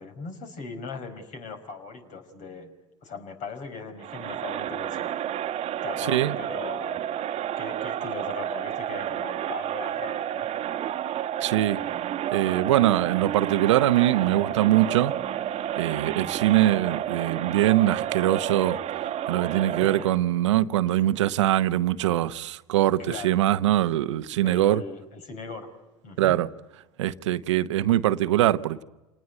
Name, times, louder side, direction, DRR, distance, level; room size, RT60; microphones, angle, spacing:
voice 1, 0.0-2.7 3.0-5.1 5.8-7.1 7.6-10.5 19.8-20.1 20.9-21.0 23.1-23.3 24.4-25.7 26.0-26.4, left 4 dB, 55° left, 5.2 m, -39 dB
Crowd, 4.0-20.2, right 11 dB, 45° right, 1.2 m, -31 dB
voice 2, 6.0-6.4 11.4-11.8 12.3-15.1 15.8-18.8 19.3-24.8 26.2-26.5 27.0-28.8, right 13 dB, 80° right, 0.9 m, -22 dB
28.5 x 19.5 x 9.3 m
hypercardioid pair, 80°, 15 cm